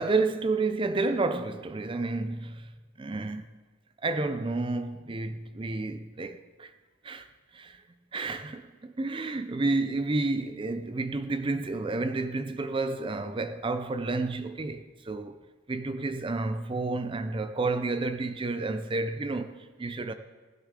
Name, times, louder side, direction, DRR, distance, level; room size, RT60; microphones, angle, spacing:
voice 1, 0.0-2.7 3.0-3.5 4.0-6.7 7.0-7.3 7.5-7.8 8.1-15.4 15.7-20.1, right 3 dB, 25° right, 0.4 m, -30 dB
16.5 x 11.5 x 3.7 m
head